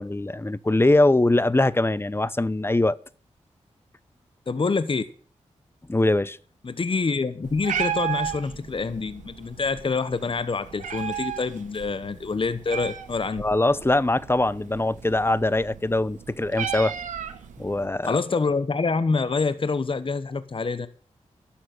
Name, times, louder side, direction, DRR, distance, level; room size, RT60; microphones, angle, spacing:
voice 1, 0.0-3.0 5.9-6.4 13.4-17.0 17.6-18.2, left 2 dB, 20° left, 0.8 m, -22 dB
voice 2, 4.5-5.0 6.6-13.4 18.0-20.9, left 4 dB, 45° left, 1.0 m, -26 dB
Meow, 7.4-17.9, right 8 dB, 90° right, 1.7 m, -35 dB
12.5 x 7.2 x 9.1 m
cardioid pair, 45°, 13 cm